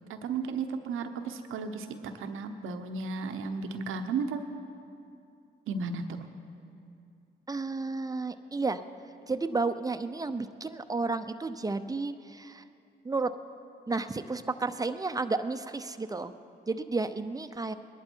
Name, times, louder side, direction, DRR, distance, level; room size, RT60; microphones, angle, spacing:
voice 1, 0.1-1.9 2.2-4.5 5.7-6.2, right 4 dB, 90° right, 7 dB, 0.9 m, -34 dB
voice 2, 7.5-8.8 9.3-12.6 13.0-13.3 13.9-16.3 16.7-17.7, right 3 dB, 15° right, 9 dB, 0.7 m, -32 dB
20.5 x 11.0 x 4.6 m, 2.5 s
cardioid pair, 65°, 20 cm